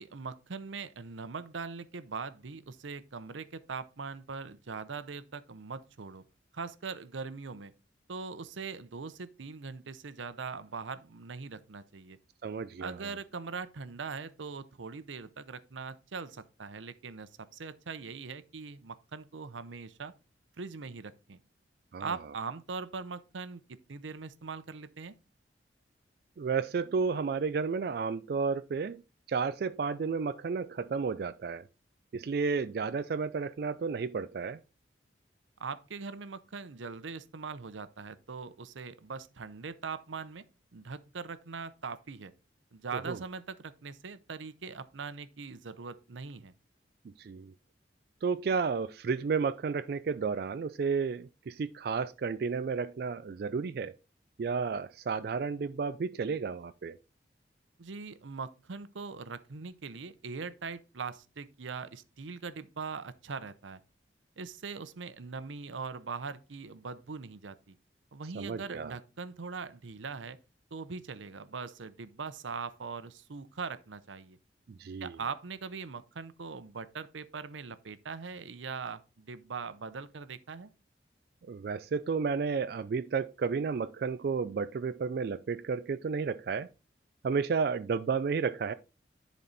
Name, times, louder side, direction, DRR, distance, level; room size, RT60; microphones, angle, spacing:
voice 1, 0.0-6.2 6.5-7.7 8.1-12.2 12.8-20.1 20.6-21.4 22.0-25.1 35.6-40.4 40.7-42.3 42.7-46.5 57.8-63.8 64.4-67.8 68.1-70.4 70.7-74.4 75.0-80.7, right 5 dB, 90° right, 0.7 m, -41 dB
voice 2, 12.4-13.0 21.9-22.1 26.4-29.0 29.3-31.7 32.1-34.6 43.1-43.2 47.2-47.5 48.2-53.9 54.4-57.0 68.3-68.9 74.7-75.2 81.5-86.7 87.2-88.7, right 5 dB, 55° right, 0.3 m, -32 dB
10.5 x 4.2 x 4.0 m
head